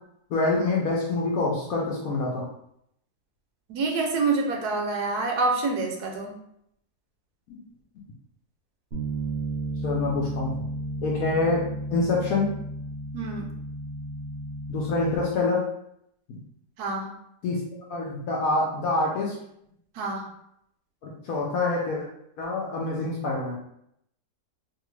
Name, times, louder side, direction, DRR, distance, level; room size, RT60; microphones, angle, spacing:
voice 1, 0.3-2.4 7.5-7.6 9.8-10.7 11.0-12.5 14.7-15.7 16.3-16.4 17.4-17.6 17.9-19.4 21.0-22.1 22.4-23.5, left 3 dB, 70° left, -3 dB, 0.9 m, -26 dB
voice 2, 3.7-6.4 13.1-13.5 16.8-17.1 20.0-20.3, right 3 dB, 75° right, 1 dB, 1.1 m, -27 dB
Bass guitar, 8.9-15.2, right 2 dB, 55° right, 0.7 m, -33 dB
2.8 x 2.4 x 3.0 m, 0.74 s
omnidirectional pair, 1.8 m